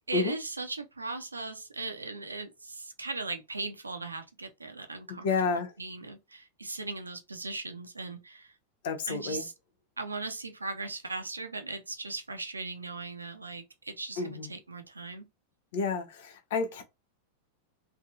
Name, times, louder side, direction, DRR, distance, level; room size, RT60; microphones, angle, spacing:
voice 1, 0.1-8.5 9.1-9.5 10.0-15.3, right 3 dB, 80° right, 0.7 m, -38 dB
voice 2, 5.2-5.7 8.8-9.4 14.2-14.5 15.7-16.8, left 4 dB, 55° left, 0.7 m, -30 dB
3.4 x 2.8 x 2.5 m
figure-of-eight pair, 90°, 0 cm